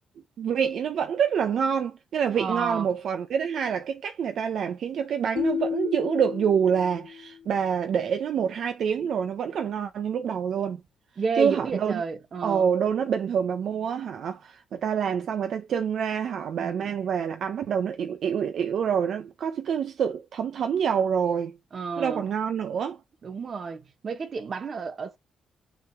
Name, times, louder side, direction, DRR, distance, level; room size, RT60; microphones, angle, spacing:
voice 1, 0.4-10.8 11.4-12.0 12.4-21.5 22.0-23.0, right 7 dB, 65° right, 0.9 m, -26 dB
voice 2, 2.4-2.9 11.2-12.7 16.6-16.9 21.7-22.2 23.2-25.2, right 5 dB, 45° right, 1.5 m, -31 dB
sound 1, 5.4-7.5, left 8 dB, 70° left, 0.5 m, -32 dB
6.5 x 4.8 x 3.0 m
cardioid pair, 90°, 0 cm